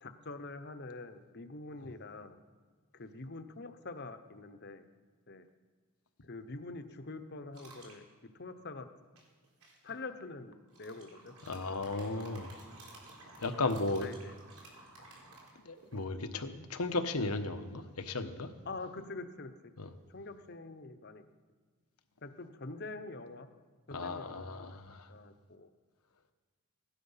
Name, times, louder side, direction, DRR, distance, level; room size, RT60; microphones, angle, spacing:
voice 1, 0.0-2.4 2.9-4.8 5.3-5.4 6.3-8.0 8.4-8.9 9.8-11.3 13.9-14.3 18.7-19.5 20.1-21.2 22.2-23.5 23.9-24.8 25.1-25.7, left 3 dB, 50° left, 9 dB, 0.9 m, -45 dB
sound 1, 7.5-8.0 9.2-9.9 10.7-16.0, right 2 dB, 90° right, 4.2 m, -54 dB
voice 2, 11.4-12.6 13.4-14.1 15.6-18.5 19.8-19.9 23.9-25.1, left 3 dB, 85° left, 8 dB, 1.1 m, -35 dB
17.5 x 12.0 x 5.7 m, 1.6 s
head